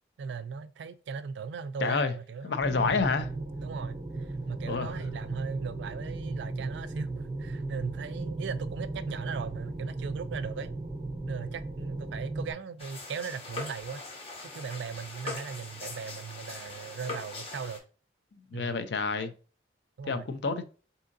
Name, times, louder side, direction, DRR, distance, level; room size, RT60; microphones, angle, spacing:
voice 1, 0.2-3.1 3.6-10.7 11.3-14.0 14.4-17.8 18.5-18.8 20.0-20.3, right 5 dB, 80° right, 0.3 m, -38 dB
voice 2, 1.8-2.1 2.4-3.3 4.7-4.9 18.5-19.3 20.1-20.6, left 4 dB, 70° left, 0.5 m, -28 dB
sound 1, 2.6-12.5, right 2 dB, 20° right, 0.7 m, -36 dB
sound 2, 12.8-17.8, left 3 dB, 35° left, 0.8 m, -41 dB
3.6 x 2.7 x 2.6 m
head